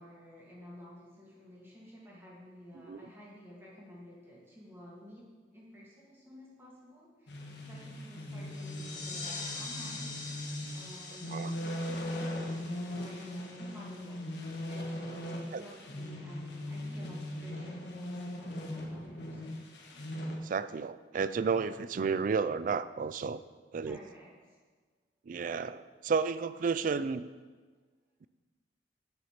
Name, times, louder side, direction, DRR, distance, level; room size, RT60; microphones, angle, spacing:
voice 1, 0.0-10.4 10.7-12.6 12.9-14.2 14.7-17.9 18.4-19.5 23.8-24.6, left 1 dB, 15° right, -5 dB, 2.1 m, -52 dB
sound 1, 7.3-20.4, left 1 dB, 75° left, 1.4 m, -39 dB
sound 2, 8.4-13.8, left 3 dB, 45° left, 2.1 m, -44 dB
voice 2, 20.4-23.4 23.7-24.0 25.3-27.3, right 5 dB, 45° right, 14 dB, 0.3 m, -32 dB
8.1 x 6.9 x 5.9 m, 1.4 s
head